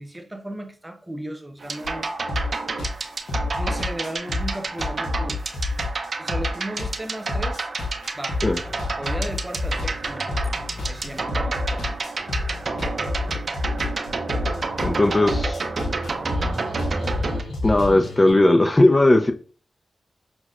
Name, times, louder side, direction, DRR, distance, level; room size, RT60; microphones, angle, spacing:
voice 1, 0.0-2.1 3.6-5.4 6.2-7.7 8.1-8.4 9.0-10.5 10.8-12.1, right 1 dB, 20° right, 0.7 m, -35 dB
sound 1, 1.6-17.4, right 3 dB, 60° right, 0.5 m, -30 dB
sound 2, 1.8-18.3, left 2 dB, 85° left, 0.9 m, -29 dB
voice 2, 14.8-15.7 17.6-19.3, left 1 dB, 30° left, 0.4 m, -17 dB
5.9 x 2.1 x 2.4 m
cardioid pair, 45°, 0 cm